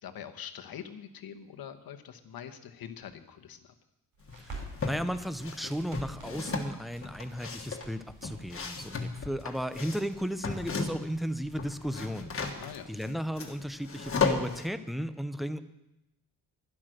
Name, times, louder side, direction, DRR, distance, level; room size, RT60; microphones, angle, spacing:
voice 1, 0.0-3.7 12.5-12.9, left 9 dB, 75° left, 8 dB, 1.1 m, -44 dB
Crackle, 4.1-14.7, right 3 dB, 70° right, 5.3 m, -52 dB
sound 1, 4.3-5.0 5.4-11.2 11.5-14.6, left 4 dB, 35° left, 1.5 m, -34 dB
voice 2, 4.4-12.3 12.9-15.6, equal, ahead, 11 dB, 0.5 m, -35 dB
12.0 x 11.0 x 6.4 m, 0.93 s
wide cardioid pair, 150°, 37 cm